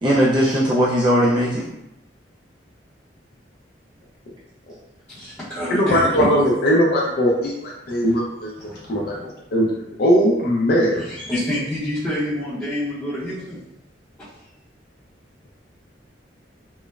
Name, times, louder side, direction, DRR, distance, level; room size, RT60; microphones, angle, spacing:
voice 1, 0.0-1.6, equal, 25° right, -6 dB, 0.3 m, -18 dB
voice 2, 5.1-6.3 7.9-8.1 8.6-9.2 10.9-13.6, left 1 dB, 10° left, -14 dB, 0.7 m, -28 dB
voice 3, 5.7-9.1 9.5-11.0, equal, 60° left, -3 dB, 0.4 m, -19 dB
3.0 x 2.0 x 2.3 m, 0.87 s
head